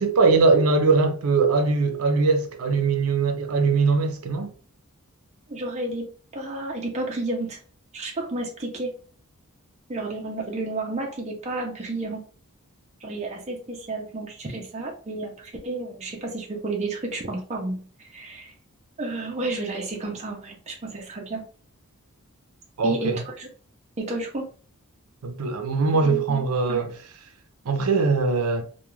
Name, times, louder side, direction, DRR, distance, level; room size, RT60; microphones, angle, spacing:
voice 1, 0.0-4.5 22.8-23.2 25.2-26.9 27.6-28.6, right 4 dB, 75° right, 0.5 m, -21 dB
voice 2, 5.5-7.6 7.9-9.0 9.9-12.2 13.0-18.5 19.0-21.5 22.8-23.5 24.0-24.5 26.0-26.9, right 2 dB, 30° right, 0.5 m, -31 dB
2.3 x 2.2 x 3.0 m
head